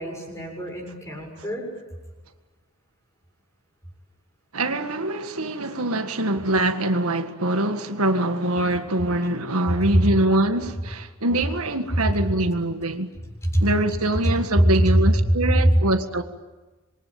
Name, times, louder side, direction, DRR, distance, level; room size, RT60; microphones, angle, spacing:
voice 1, 0.0-1.7 9.9-10.0 13.4-13.6 14.2-15.2 15.6-15.8, right 1 dB, 15° left, 7.0 m, -21 dB
voice 2, 4.5-13.1 13.6-16.2, right 1 dB, 90° right, 1.8 m, -24 dB
27.0 x 23.0 x 8.9 m
head